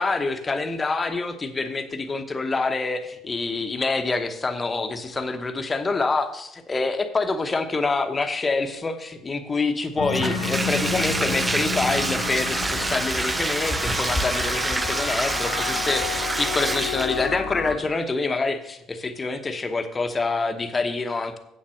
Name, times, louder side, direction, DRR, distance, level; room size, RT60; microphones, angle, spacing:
voice 1, 0.0-21.4, left 3 dB, 20° left, 7 dB, 1.1 m, -26 dB
sound 1, 10.0-17.8, left 7 dB, 90° left, 1.2 m, -31 dB
Bathtub (filling or washing), 10.1-17.3, right 3 dB, 15° right, 0.3 m, -27 dB
sound 2, 11.8-17.9, left 1 dB, ahead, 1.7 m, -37 dB
8.2 x 7.3 x 6.3 m, 0.80 s
cardioid pair, 115°, 0 cm